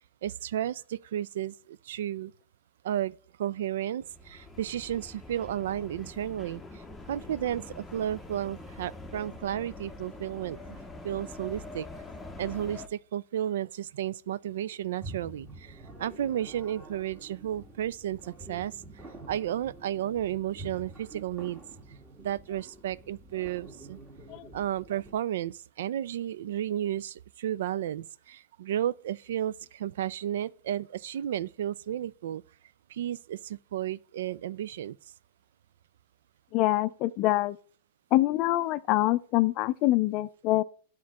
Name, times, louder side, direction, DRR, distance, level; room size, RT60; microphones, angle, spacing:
voice 1, 0.2-2.3 2.8-6.8 7.1-10.8 11.0-11.9 12.4-18.8 19.3-21.6 22.2-24.0 24.5-32.4 32.9-35.0, right 11 dB, 75° right, 0.3 m, -33 dB
sound 1, 4.0-12.9, left 2 dB, 5° left, 0.7 m, -44 dB
sound 2, 15.0-25.1, right 2 dB, 20° right, 1.7 m, -47 dB
voice 2, 36.5-37.6 38.1-40.6, left 16 dB, 45° left, 0.4 m, -25 dB
9.4 x 3.7 x 4.1 m
hypercardioid pair, 130°, 0 cm